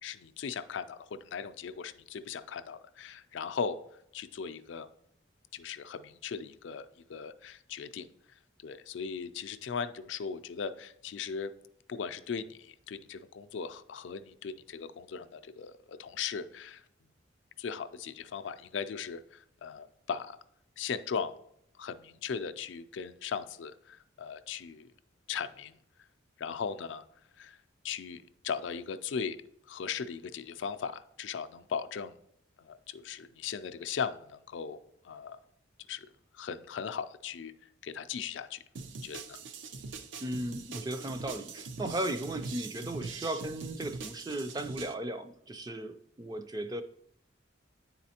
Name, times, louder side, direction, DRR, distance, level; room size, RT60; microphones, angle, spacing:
voice 1, 0.0-3.8 4.1-4.9 5.5-8.1 8.6-11.5 11.9-16.8 17.6-20.4 20.8-21.3 21.8-24.9 25.3-25.8 26.4-27.0 27.4-27.6 27.8-29.4 29.7-32.1 32.6-34.8 35.0-35.4 35.9-36.1 36.4-37.5 37.8-38.6 39.0-39.4, left 6 dB, 75° left, 11 dB, 0.4 m, -38 dB
sound 1, 38.8-44.9, right 4 dB, 75° right, 0.5 m, -42 dB
voice 2, 40.2-46.8, right 1 dB, 20° right, 8 dB, 0.4 m, -36 dB
9.5 x 4.1 x 2.8 m, 0.73 s
head